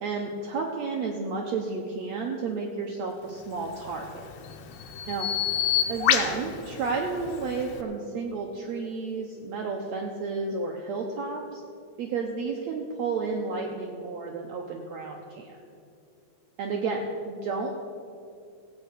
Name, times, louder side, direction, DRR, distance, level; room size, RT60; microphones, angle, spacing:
voice 1, 0.0-4.2 5.1-5.3 5.9-11.6 12.0-15.6 16.6-17.8, right 4 dB, 85° right, 1 dB, 1.5 m, -31 dB
Bird vocalization bird call bird song, 3.6-7.8, left 9 dB, 90° left, 2.8 m, -29 dB
15.5 x 8.2 x 6.6 m, 2.4 s
omnidirectional pair, 4.4 m